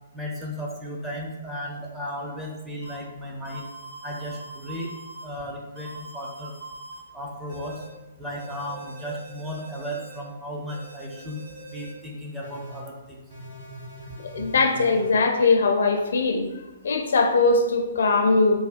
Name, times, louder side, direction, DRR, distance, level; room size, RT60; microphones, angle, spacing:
voice 1, 0.1-3.6 4.0-4.9 5.2-6.5 7.1-7.8 8.2-11.4 11.7-13.2, equal, 10° right, -3 dB, 0.6 m, -35 dB
sound 1, 2.8-2.9 3.4-5.3 5.8-7.0 7.5-7.9 8.4-10.2 10.7-11.9 12.4-12.8 13.3-15.1, right 2 dB, 60° right, 1.2 m, -42 dB
voice 2, 14.2-16.5 16.8-18.6, left 3 dB, 60° left, 3 dB, 0.4 m, -21 dB
3.5 x 2.1 x 2.4 m, 1.1 s
figure-of-eight pair, 125°, 0 cm